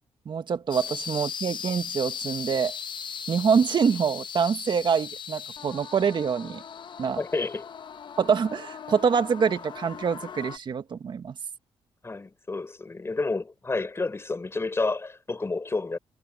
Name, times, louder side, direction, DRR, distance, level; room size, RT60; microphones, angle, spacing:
voice 1, 0.3-2.8 3.3-6.6 7.0-7.2 8.2-11.3, right 6 dB, 50° right, 1.7 m, -25 dB
sound 1, 0.7-10.6, left 7 dB, 55° left, 1.0 m, -38 dB
voice 2, 7.2-7.7 12.0-16.0, left 3 dB, 25° left, 5.8 m, -30 dB
cardioid pair, 75°, 10 cm